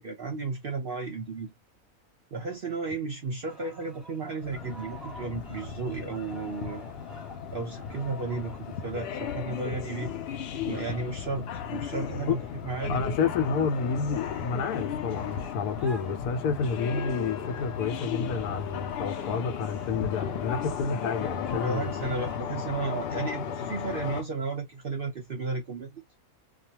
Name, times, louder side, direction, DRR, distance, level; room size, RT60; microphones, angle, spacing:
voice 1, 0.0-1.5 2.3-6.8 7.5-10.1 10.6-12.4 12.6-13.0 21.6-26.0, right 3 dB, 50° right, 0.7 m, -33 dB
sound 1, 3.5-22.4, equal, ahead, 0.4 m, -50 dB
sound 2, 4.4-24.2, left 7 dB, 70° left, 0.6 m, -35 dB
voice 2, 12.9-22.0, left 5 dB, 90° left, 1.1 m, -30 dB
2.4 x 2.3 x 2.8 m
omnidirectional pair, 1.6 m